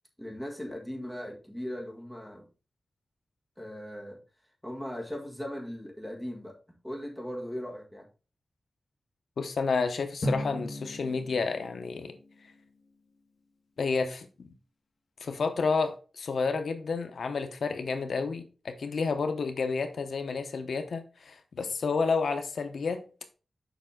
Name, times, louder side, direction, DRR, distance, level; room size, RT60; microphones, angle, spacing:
voice 1, 0.2-2.5 3.6-4.2 4.6-6.6 6.8-8.1, equal, ahead, 1.7 m, -38 dB
voice 2, 9.4-12.1 13.8-14.5 15.2-23.0, left 4 dB, 75° left, 0.8 m, -30 dB
Drum, 10.2-12.9, equal, 45° left, 1.3 m, -36 dB
7.0 x 5.1 x 3.7 m
wide cardioid pair, 165°, 0 cm